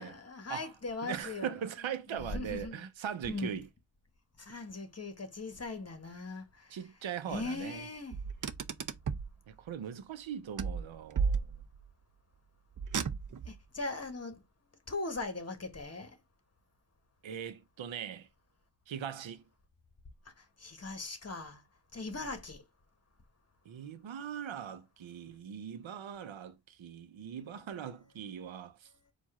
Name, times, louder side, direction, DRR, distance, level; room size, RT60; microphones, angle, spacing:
voice 1, 0.0-1.5 2.1-2.8 3.2-3.6 4.4-6.8 7.3-8.2 13.4-14.4 14.9-16.2 20.6-21.6 21.9-22.6, left 3 dB, 30° left, 1.3 m, -39 dB
voice 2, 1.0-3.7 6.7-7.9 9.5-11.5 17.2-18.3 18.9-19.4 22.1-22.2 23.7-28.9, right 8 dB, 80° right, 0.7 m, -40 dB
Car, 8.1-9.3 10.6-11.9 12.8-13.6, right 5 dB, 45° right, 0.6 m, -34 dB
4.6 x 2.5 x 4.2 m
wide cardioid pair, 65°, 46 cm